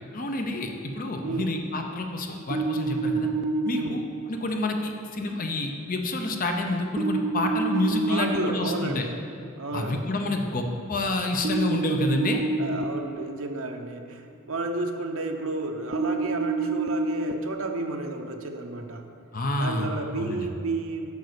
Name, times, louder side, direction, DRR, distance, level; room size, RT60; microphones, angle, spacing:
voice 1, 0.1-3.3 3.6-9.1 9.7-12.4 19.3-19.9 20.2-20.4, left 2 dB, 40° left, 3 dB, 0.7 m, -28 dB
sound 1, 2.5-3.9 7.0-8.4 11.4-12.8 15.9-17.3, right 3 dB, 50° right, 0.4 m, -27 dB
voice 2, 8.1-9.1 9.6-10.1 12.6-19.0 19.6-21.1, right 2 dB, 70° right, 3 dB, 0.9 m, -32 dB
8.2 x 5.2 x 6.7 m, 2.7 s
head